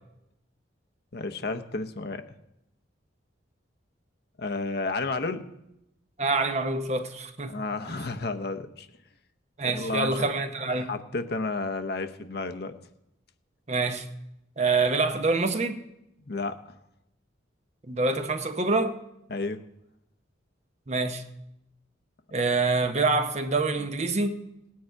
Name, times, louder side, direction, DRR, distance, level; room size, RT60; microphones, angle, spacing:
voice 1, 1.1-2.2 4.4-5.5 7.5-8.9 9.6-10.3 10.9-12.7 16.2-16.8 19.3-19.6, left 3 dB, 55° left, 0.8 m, -31 dB
voice 2, 6.2-7.5 7.9-8.0 9.6-10.9 13.7-14.1 14.6-15.8 17.9-19.0 20.9-21.2 22.3-24.4, right 3 dB, 35° right, 0.8 m, -26 dB
18.5 x 9.3 x 4.6 m
head